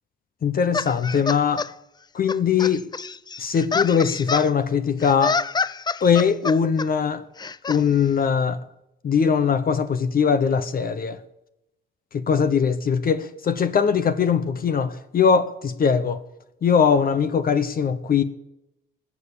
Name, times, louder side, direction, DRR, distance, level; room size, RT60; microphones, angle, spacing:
voice 1, 0.4-1.7 2.1-2.9 3.4-5.4 6.0-7.2 7.7-8.6 9.0-11.2 12.1-16.2 16.6-18.2, left 6 dB, 50° left, 1.0 m, -21 dB
sound 1, 0.7-1.7 2.3-4.5 5.0-6.9 7.4-7.8, left 4 dB, 20° left, 0.4 m, -27 dB
19.0 x 7.3 x 8.6 m
cardioid pair, 90°, 20 cm